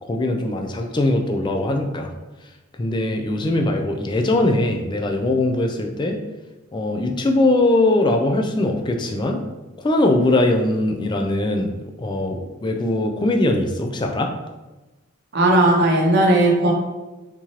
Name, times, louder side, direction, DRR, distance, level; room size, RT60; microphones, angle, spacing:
voice 1, 0.0-2.1 2.8-6.2 6.7-9.4 9.8-14.3, left 2 dB, 20° left, 3 dB, 0.3 m, -21 dB
voice 2, 15.3-16.7, right 1 dB, 50° right, 0 dB, 0.7 m, -16 dB
3.6 x 2.9 x 3.0 m, 1.1 s
head